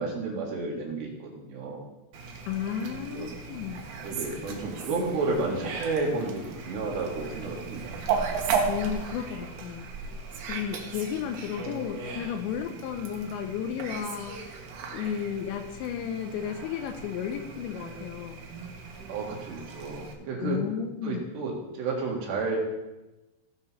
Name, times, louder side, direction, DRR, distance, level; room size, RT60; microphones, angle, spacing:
voice 1, 0.0-1.8 3.1-3.3 4.0-7.9 19.1-20.6 21.0-22.6, right 3 dB, 65° right, -2 dB, 4.0 m, -31 dB
Fowl, 2.1-20.1, right 5 dB, 85° right, 1.7 m, -36 dB
voice 2, 2.5-3.9 8.7-9.9 10.5-14.4 14.9-18.4 20.4-21.2, left 8 dB, 80° left, 7 dB, 2.8 m, -33 dB
17.5 x 5.9 x 4.3 m, 1.0 s
omnidirectional pair, 5.5 m